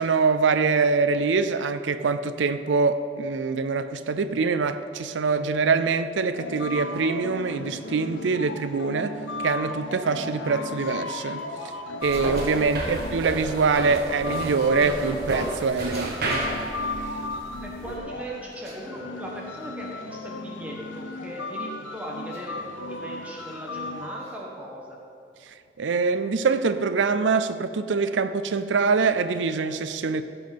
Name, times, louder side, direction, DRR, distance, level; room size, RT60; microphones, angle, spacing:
voice 1, 0.0-11.4 12.0-16.4 25.8-30.2, right 4 dB, 80° right, 0.5 m, -24 dB
sound 1, 6.3-24.2, left 2 dB, 85° left, 0.9 m, -36 dB
sound 2, 12.0-18.0, right 1 dB, 55° right, 1.6 m, -32 dB
Cough, 12.1-12.7 13.9-14.1 15.0-15.1 15.9-16.6 18.5-19.1 19.6-19.8 20.9-21.3 22.3-22.7 24.1-24.4 26.6-26.8 28.5-28.7, right 2 dB, 35° right, 1.6 m, -45 dB
voice 2, 17.6-22.5 22.9-25.0, right 1 dB, 10° right, 1.2 m, -38 dB
16.0 x 5.4 x 5.9 m
head